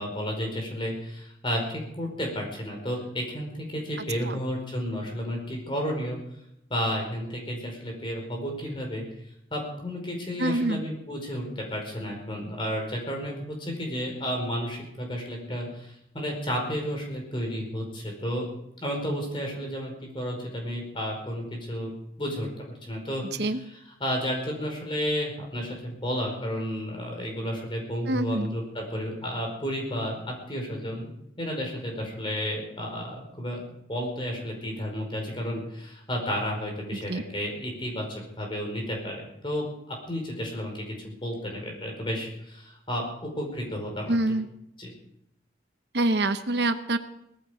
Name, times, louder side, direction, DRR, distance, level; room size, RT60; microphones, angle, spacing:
voice 1, 0.0-6.2 6.7-9.0 9.5-18.5 18.8-23.5 24.0-31.1 31.4-44.2 44.8-44.9, equal, 25° left, 1 dB, 5.0 m, -32 dB
voice 2, 10.4-10.8 23.4-23.6 28.1-28.6 37.1-37.2 44.1-44.5 45.9-47.0, right 2 dB, 65° right, 9 dB, 0.9 m, -25 dB
19.0 x 14.5 x 5.1 m, 0.79 s
head